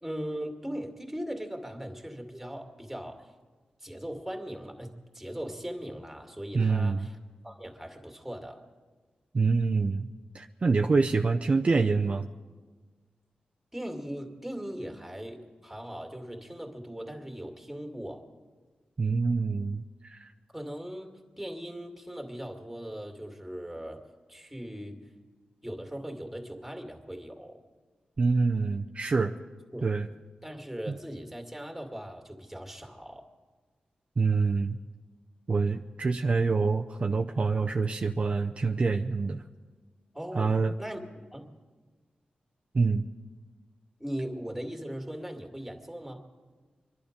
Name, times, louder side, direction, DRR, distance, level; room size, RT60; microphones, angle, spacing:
voice 1, 0.0-3.3 3.8-7.2 7.4-8.6 13.7-18.3 20.5-24.0 24.3-25.0 25.6-27.6 29.7-29.8 30.4-33.3 40.1-41.6 44.0-46.3, equal, 5° right, 3 dB, 2.3 m, -39 dB
voice 2, 6.5-7.1 9.3-10.1 10.3-12.3 19.0-20.3 28.2-29.3 29.8-30.1 34.2-34.8 35.5-39.4 40.3-40.7 42.7-43.1, right 4 dB, 45° right, 4 dB, 0.6 m, -26 dB
25.0 x 11.0 x 5.2 m, 1.4 s
cardioid pair, 75°, 3 cm